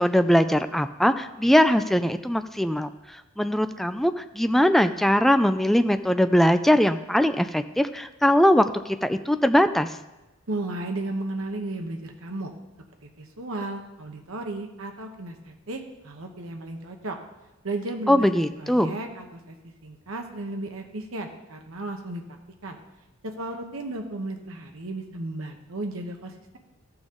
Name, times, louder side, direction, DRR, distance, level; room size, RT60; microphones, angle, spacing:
voice 1, 0.0-2.9 3.4-8.7 9.0-9.9 18.1-18.9, equal, ahead, 9 dB, 0.4 m, -21 dB
voice 2, 10.5-12.5 13.2-17.2 17.6-18.3 18.6-22.2 22.6-22.8 23.4-26.6, right 2 dB, 80° right, 4 dB, 1.0 m, -34 dB
14.5 x 6.1 x 3.8 m, 1.0 s
head